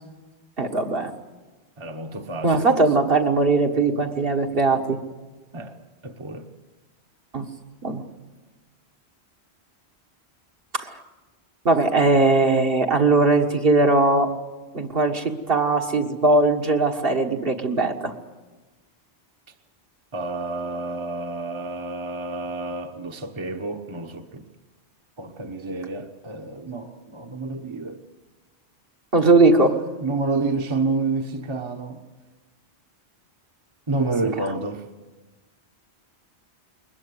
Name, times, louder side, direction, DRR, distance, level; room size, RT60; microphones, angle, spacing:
voice 1, 0.6-1.1 2.4-5.0 7.3-7.5 7.8-8.0 10.7-10.9 11.7-14.3 14.7-18.1 29.1-29.8, right 3 dB, 60° right, 1.8 m, -19 dB
voice 2, 1.8-2.8 5.5-5.8 6.0-6.5 20.1-24.4 25.2-28.0 30.0-32.0 33.9-34.8, right 3 dB, 25° right, 1.1 m, -29 dB
22.0 x 20.5 x 8.3 m
omnidirectional pair, 1.1 m